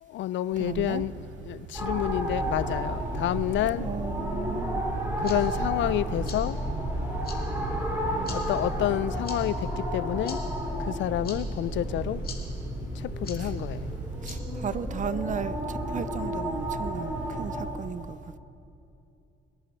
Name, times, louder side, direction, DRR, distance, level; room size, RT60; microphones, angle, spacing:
voice 1, 0.0-3.9 5.2-6.6 8.3-10.4 10.8-12.2 12.9-14.0, left 13 dB, 70° left, 0.4 m, -29 dB
sound 1, 0.5-16.5, right 7 dB, 75° right, 0.8 m, -43 dB
voice 2, 0.6-1.0 3.8-4.8 13.4-13.5 14.2-18.4, right 7 dB, 40° right, 0.5 m, -35 dB
sound 2, 1.7-17.7, equal, 10° right, 3.9 m, -32 dB
sound 3, 4.9-15.1, left 5 dB, 50° left, 2.3 m, -48 dB
22.0 x 10.5 x 4.1 m
cardioid pair, 90°, 20 cm